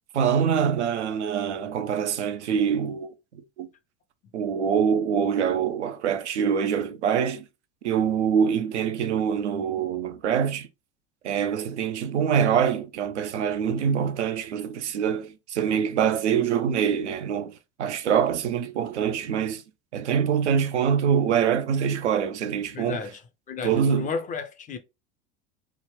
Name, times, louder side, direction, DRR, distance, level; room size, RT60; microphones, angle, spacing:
voice 1, 0.1-3.1 3.6-3.7 4.3-7.4 7.8-10.7 11.2-17.5 17.8-19.6 19.9-23.0 23.6-24.1, right 8 dB, 75° right, 0.6 m, -24 dB
voice 2, 22.7-23.2 23.5-24.8, left 5 dB, 20° left, 0.5 m, -32 dB
3.4 x 2.1 x 3.4 m
figure-of-eight pair, 80°, 35 cm